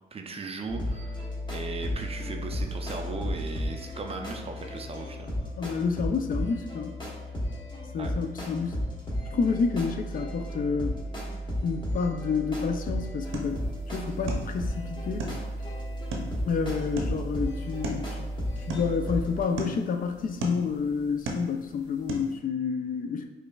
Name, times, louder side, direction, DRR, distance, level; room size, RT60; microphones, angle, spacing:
voice 1, 0.1-1.3 1.5-5.4 8.0-8.1, right 4 dB, 30° right, 4 dB, 0.4 m, -37 dB
sound 1, 0.7-19.4, equal, 25° left, 1.0 m, -34 dB
voice 2, 5.6-7.0 7.9-8.8 9.3-11.0 11.6-13.6 13.9-15.2 16.5-18.3 18.7-23.2, left 5 dB, 45° left, 5 dB, 0.4 m, -29 dB
sound 2, 13.2-22.4, right 1 dB, 85° right, 0.7 m, -39 dB
4.9 x 2.5 x 2.3 m, 1.1 s
cardioid pair, 90°, 20 cm